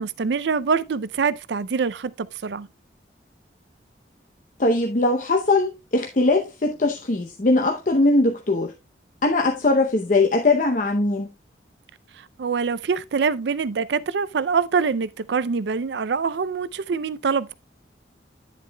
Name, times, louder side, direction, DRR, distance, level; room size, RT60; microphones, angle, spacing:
voice 1, 0.0-2.7 12.2-17.5, right 5 dB, 70° right, 0.4 m, -25 dB
voice 2, 4.6-8.7 9.2-11.3, left 2 dB, 45° left, 0.7 m, -20 dB
10.0 x 7.3 x 2.2 m
head